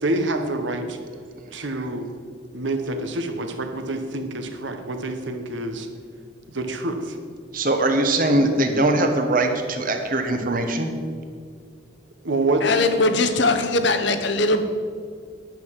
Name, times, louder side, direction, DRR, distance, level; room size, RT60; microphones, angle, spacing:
voice 1, 0.0-1.0 1.5-2.1 2.5-5.9 6.5-7.2 12.2-12.8, right 2 dB, 70° right, 6 dB, 1.1 m, -26 dB
voice 2, 7.5-10.9, right 1 dB, 45° right, 5 dB, 1.1 m, -21 dB
voice 3, 12.6-14.6, left 2 dB, 60° left, 8 dB, 0.9 m, -20 dB
10.5 x 6.2 x 7.5 m, 2.1 s
head